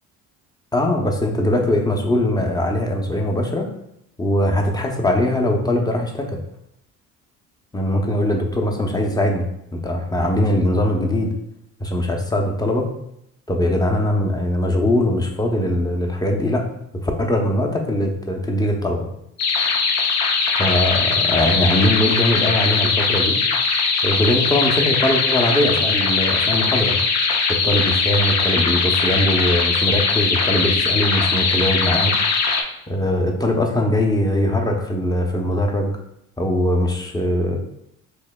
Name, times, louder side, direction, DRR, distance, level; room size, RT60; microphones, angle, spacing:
voice 1, 0.7-3.7 4.2-6.4 7.7-9.5 9.7-11.3 11.8-12.9 13.5-16.7 17.0-19.1 20.6-23.4 24.0-27.0 27.6-32.1 32.9-35.9 36.4-37.6, left 1 dB, 10° left, 2 dB, 0.6 m, -21 dB
sound 1, 19.4-32.6, left 4 dB, 55° left, 0.7 m, -20 dB
4.4 x 2.7 x 2.2 m, 0.77 s
supercardioid pair, 80°, 33 cm